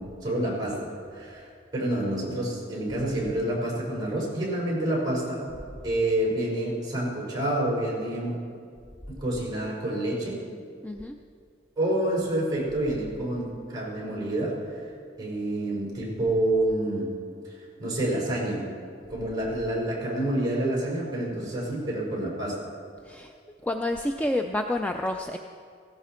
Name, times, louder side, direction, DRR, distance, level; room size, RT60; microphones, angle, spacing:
voice 1, 0.0-5.4 5.8-8.3 9.1-10.4 11.8-14.8 15.2-17.1 17.8-18.6 19.1-22.5, right 1 dB, 20° right, -4 dB, 4.7 m, -28 dB
voice 2, 10.8-11.2 23.0-23.3 23.6-25.4, left 1 dB, 10° left, 4 dB, 0.4 m, -29 dB
16.5 x 16.0 x 4.4 m, 2.3 s
head